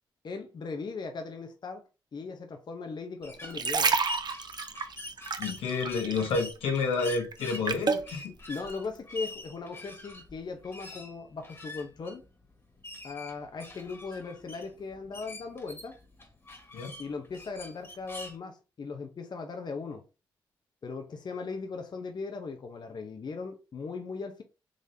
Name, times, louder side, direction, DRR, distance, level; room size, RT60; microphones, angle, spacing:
voice 1, 0.2-1.8 2.1-3.9 8.5-12.2 13.0-16.0 17.0-20.0 20.8-24.4, left 4 dB, 50° left, 0.7 m, -38 dB
sound 1, 3.2-18.4, left 1 dB, 25° left, 1.6 m, -45 dB
sound 2, 3.3-6.4 6.7-8.1 8.7-8.9, right 5 dB, 50° right, 0.6 m, -29 dB
voice 2, 5.4-8.3 16.7-16.9, left 4 dB, 90° left, 1.1 m, -30 dB
3.8 x 3.3 x 2.7 m
supercardioid pair, 55°, 9 cm